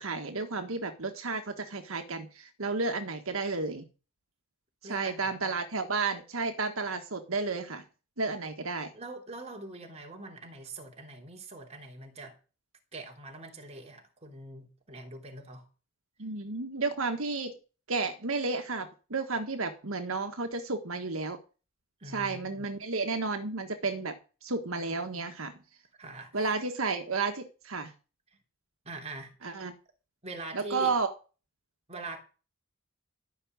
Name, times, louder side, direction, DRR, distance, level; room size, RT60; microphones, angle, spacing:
voice 1, 0.0-3.8 4.8-7.8 8.2-8.9 16.2-17.5 17.9-21.4 22.1-24.2 24.4-25.6 26.3-27.9 29.4-29.7 30.5-31.1, right 4 dB, 75° right, 1.5 m, -32 dB
voice 2, 4.8-5.5 8.9-12.3 12.9-15.7 22.0-22.7 26.0-26.5 28.8-29.5 30.2-30.9 31.9-32.2, right 2 dB, 30° right, 3.4 m, -43 dB
14.0 x 6.0 x 9.6 m
head